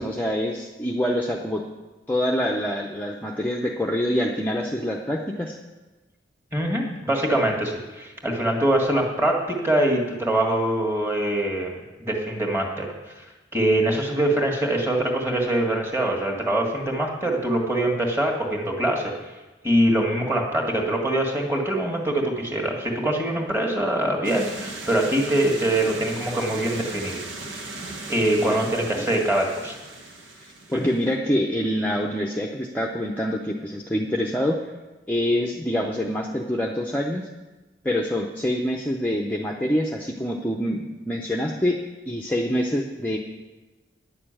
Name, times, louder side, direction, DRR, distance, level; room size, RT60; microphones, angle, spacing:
voice 1, 0.0-1.6 2.1-5.6 28.4-28.5 29.0-29.1 30.7-34.6 35.1-37.3 37.8-41.8 42.1-43.2, equal, 10° left, 0 dB, 0.6 m, -25 dB
voice 2, 6.5-12.9 13.2-13.3 13.5-19.1 19.6-27.2 28.1-29.8 30.7-30.9, right 1 dB, 10° right, 0 dB, 1.8 m, -23 dB
sound 1, 24.2-31.1, right 2 dB, 90° right, 1.8 m, -37 dB
10.5 x 6.8 x 8.9 m, 1.2 s
head